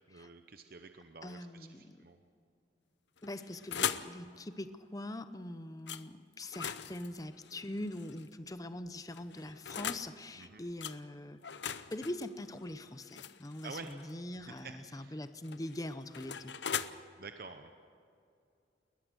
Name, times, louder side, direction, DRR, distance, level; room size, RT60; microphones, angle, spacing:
voice 1, 0.1-2.2 10.4-10.6 13.6-13.9 14.4-15.2 17.2-17.7, right 4 dB, 55° right, 7 dB, 0.8 m, -49 dB
voice 2, 1.2-2.0 3.2-11.4 11.9-16.6, left 1 dB, 20° left, 11 dB, 0.7 m, -43 dB
sound 1, 3.2-4.2 5.9-6.0 6.4-8.3 9.1-10.1 10.8-11.0 11.4-14.1 15.2-16.9, left 8 dB, 75° left, 0.7 m, -40 dB
21.0 x 20.5 x 6.3 m, 2.5 s
head